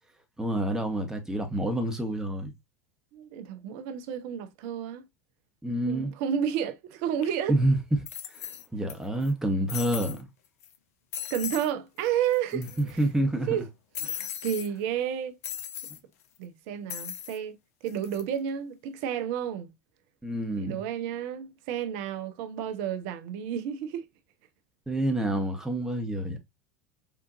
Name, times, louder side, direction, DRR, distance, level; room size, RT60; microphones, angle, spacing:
voice 1, 0.4-2.5 5.6-6.1 7.5-7.8 8.7-10.3 12.5-13.6 20.2-20.8 24.9-26.4, right 1 dB, 5° right, 0.9 m, -28 dB
voice 2, 3.1-5.0 5.9-7.6 11.3-13.0 13.5-13.7 14.0-15.4 16.4-17.6 17.8-19.7 20.6-24.1, right 9 dB, 55° right, 0.5 m, -31 dB
sound 1, 7.2-7.3 8.1-8.9 9.2-9.3 9.7-10.2 10.6-10.8 11.1-11.7 12.0-12.1 12.3-13.0 13.9-14.7 15.4-16.0 16.9-17.4 17.9-18.2, left 10 dB, 65° left, 0.5 m, -37 dB
3.7 x 2.5 x 2.5 m
figure-of-eight pair, 80°, 9 cm